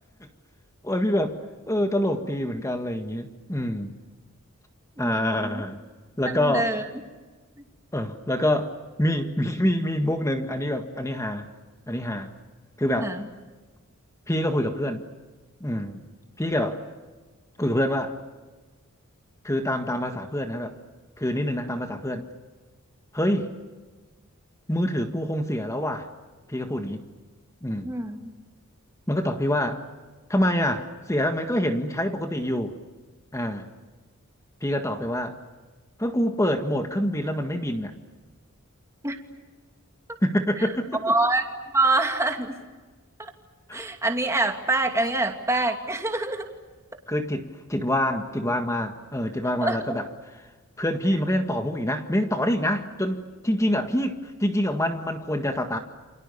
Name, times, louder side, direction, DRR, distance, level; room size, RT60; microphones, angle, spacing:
voice 1, 0.8-1.4 1.7-3.9 5.0-5.8 6.2-6.7 7.9-11.5 11.9-12.3 12.8-13.1 14.3-15.0 15.6-16.0 16.4-16.8 17.6-18.2 19.4-20.7 21.2-22.3 23.1-23.5 24.7-26.1 26.5-27.0 27.6-27.9 29.1-29.8 30.3-32.7 33.3-33.7 34.6-35.4 36.0-37.9 40.2-41.1 43.7-43.8 47.1-50.1 50.8-55.8, left 1 dB, 15° left, 5 dB, 1.7 m, -26 dB
voice 2, 5.0-5.6 6.3-6.8 13.0-13.3 27.8-28.3 39.0-39.2 40.6-40.7 41.0-41.4 41.7-42.6 43.2-43.3 43.7-46.5 49.6-49.8, right 2 dB, 15° right, 4 dB, 2.6 m, -25 dB
29.5 x 27.5 x 7.0 m, 1.3 s
head